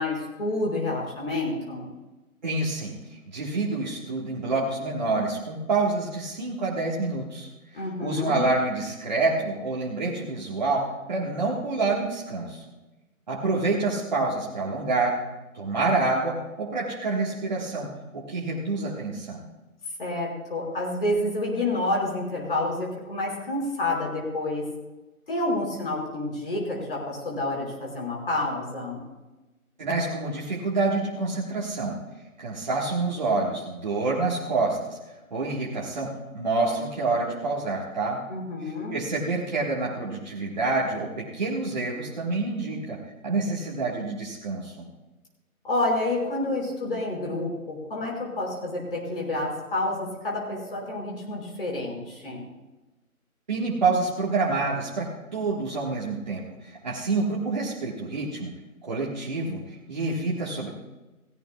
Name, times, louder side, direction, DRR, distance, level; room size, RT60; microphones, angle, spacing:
voice 1, 0.0-1.9 7.7-8.4 20.0-24.6 25.3-29.0 38.3-39.0 45.6-52.4, left 2 dB, 40° left, -2 dB, 5.2 m, -29 dB
voice 2, 2.4-3.0 3.3-7.5 8.0-12.6 13.3-15.2 15.5-19.4 29.8-32.0 32.4-35.0 35.3-38.2 38.9-44.9 53.5-58.5 58.8-59.6 59.9-60.7, right 3 dB, 30° right, -4 dB, 1.5 m, -27 dB
17.0 x 16.5 x 2.3 m, 1.1 s
figure-of-eight pair, 160°, 43 cm